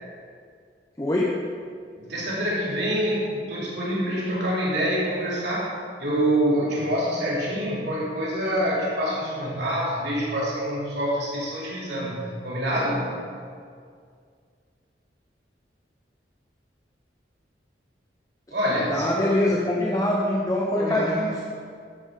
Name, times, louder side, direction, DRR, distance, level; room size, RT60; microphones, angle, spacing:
voice 1, 1.0-1.4 18.9-21.4, left 1 dB, 20° left, -3 dB, 0.8 m, -24 dB
voice 2, 2.0-5.7 6.0-13.1 18.5-19.3 20.8-21.1, equal, 70° right, -6 dB, 3.0 m, -26 dB
12.0 x 8.8 x 3.8 m, 2.1 s
head